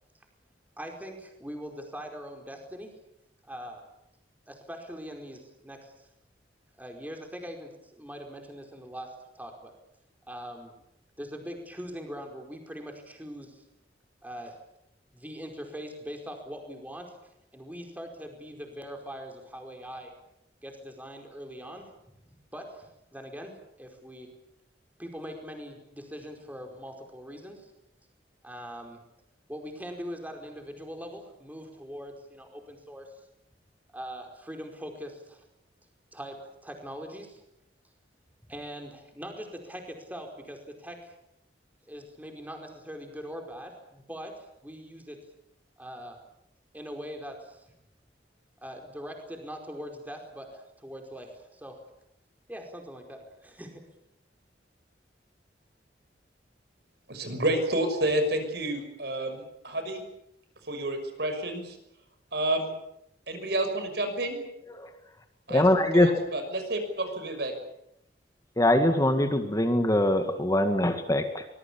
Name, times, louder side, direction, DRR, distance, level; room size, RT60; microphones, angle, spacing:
voice 1, 0.8-2.9 3.5-3.8 4.5-6.1 6.8-9.7 10.3-10.7 11.2-13.6 14.2-14.6 15.1-17.2 17.5-20.1 20.6-21.9 22.5-23.5 23.8-24.3 25.0-27.7 28.4-29.0 29.5-33.1 33.9-35.4 36.1-37.4 38.5-41.1 41.9-45.2 45.8-46.2 46.7-47.6 48.6-51.8 52.5-53.8, equal, 10° right, 3 dB, 4.8 m, -42 dB
voice 2, 57.1-60.0 60.7-61.8 62.3-62.7 63.3-64.4 65.5-65.6 65.9-67.5, right 1 dB, 65° right, 7 dB, 6.0 m, -29 dB
voice 3, 65.5-66.2 68.6-71.5, left 1 dB, 20° left, 7 dB, 2.0 m, -23 dB
24.0 x 21.0 x 8.7 m, 0.81 s
head